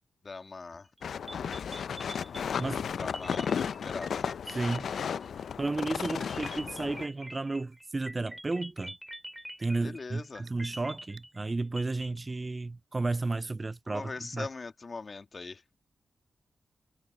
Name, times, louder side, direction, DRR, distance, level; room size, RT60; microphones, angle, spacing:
voice 1, 0.2-0.9 2.0-2.1 2.9-4.3 9.8-10.5 13.9-15.8, left 4 dB, 50° left, 2.0 m, -41 dB
sound 1, 1.0-7.1, left 7 dB, 75° left, 0.5 m, -34 dB
sound 2, 1.0-1.1 1.3-5.3 6.0-12.2, right 1 dB, 10° right, 6.0 m, -46 dB
voice 2, 2.6-3.1 4.5-5.0 5.6-9.0 9.6-14.5, right 3 dB, 35° right, 0.3 m, -33 dB
sound 3, 9.6-9.8 10.5-10.6 11.2-11.3, right 8 dB, 85° right, 4.8 m, -56 dB
supercardioid pair, 45°, 0 cm